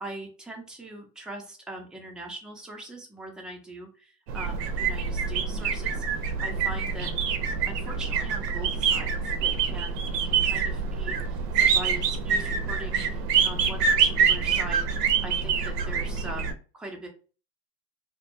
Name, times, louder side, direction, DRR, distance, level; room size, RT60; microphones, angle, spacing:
voice 1, 0.0-6.0 6.4-7.1 7.7-17.1, right 2 dB, ahead, 0 dB, 0.4 m, -41 dB
sound 1, 4.3-16.5, right 6 dB, 85° right, 0.6 m, -26 dB
2.2 x 2.2 x 2.9 m, 0.37 s
hypercardioid pair, 100°, 47 cm